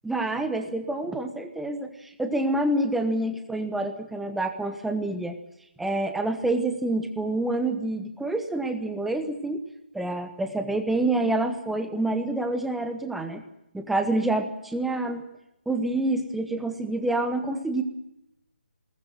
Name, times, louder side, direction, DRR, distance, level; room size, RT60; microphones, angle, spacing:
voice 1, 0.0-5.4 5.8-9.6 9.9-13.4 13.7-15.2 15.7-17.8, right 2 dB, ahead, 7 dB, 1.5 m, -27 dB
22.0 x 19.0 x 9.2 m, 0.83 s
figure-of-eight pair, 145°, 6 cm